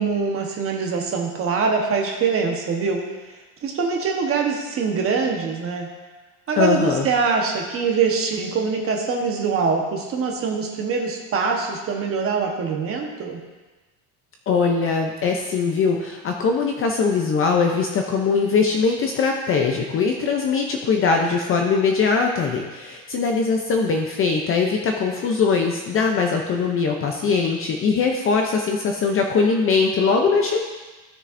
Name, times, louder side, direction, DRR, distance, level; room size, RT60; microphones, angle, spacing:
voice 1, 0.0-3.0 3.6-5.9 6.5-13.4, right 5 dB, 30° right, 1 dB, 1.1 m, -23 dB
voice 2, 6.5-7.1 14.5-30.6, left 5 dB, 30° left, 2 dB, 0.5 m, -21 dB
14.5 x 6.6 x 2.6 m, 1.2 s
cardioid pair, 170°, 45 cm